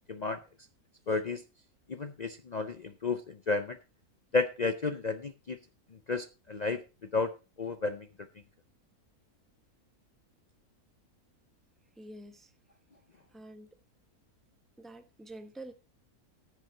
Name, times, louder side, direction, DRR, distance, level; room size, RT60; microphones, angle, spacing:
voice 1, 0.1-0.4 1.1-1.4 1.9-3.8 4.3-5.6 5.9-6.8 7.1-8.1, left 3 dB, 60° left, 0.4 m, -32 dB
voice 2, 12.0-12.5 13.3-13.7 14.8-15.7, right 1 dB, ahead, 0.6 m, -47 dB
15.0 x 7.1 x 3.8 m
omnidirectional pair, 1.6 m